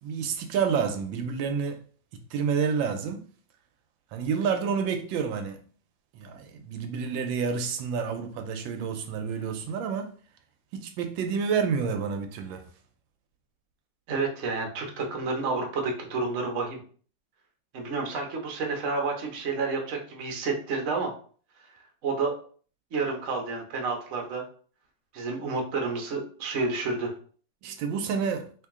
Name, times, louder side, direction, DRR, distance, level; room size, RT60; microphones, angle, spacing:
voice 1, 0.0-1.8 2.3-3.3 4.1-5.6 6.1-10.1 10.7-12.6 27.6-28.4, right 6 dB, 85° right, 1.3 m, -29 dB
voice 2, 14.1-16.8 17.7-21.1 22.0-22.3 22.9-24.4 25.1-27.1, right 4 dB, 55° right, 0.9 m, -30 dB
3.0 x 2.8 x 3.5 m
omnidirectional pair, 2.1 m